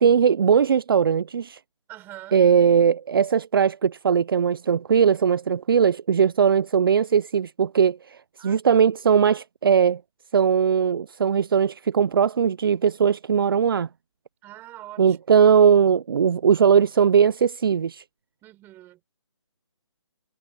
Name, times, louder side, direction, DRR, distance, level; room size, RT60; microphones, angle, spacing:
voice 1, 0.0-1.6 2.3-10.0 10.3-13.9 15.0-18.0, right 7 dB, 50° right, 0.7 m, -19 dB
voice 2, 1.9-2.4 8.4-8.8 14.4-15.2 18.4-19.0, right 15 dB, 15° right, 4.9 m, -44 dB
figure-of-eight pair, 155°, 15 cm